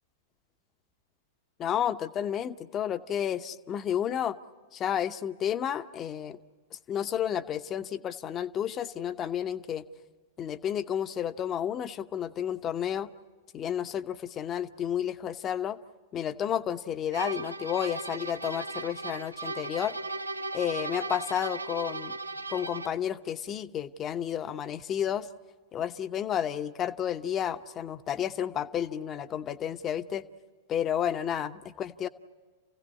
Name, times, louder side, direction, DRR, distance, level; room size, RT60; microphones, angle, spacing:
voice 1, 1.6-4.4 4.7-6.4 6.7-9.8 10.4-13.1 13.5-15.8 16.1-20.0 20.5-22.2 22.5-25.3 25.7-30.2 30.7-32.1, left 9 dB, 25° left, 11 dB, 0.9 m, -31 dB
sound 1, 17.1-23.1, right 3 dB, 85° right, 0.7 m, -37 dB
29.5 x 16.5 x 9.5 m, 1.4 s
figure-of-eight pair, 95°, 0 cm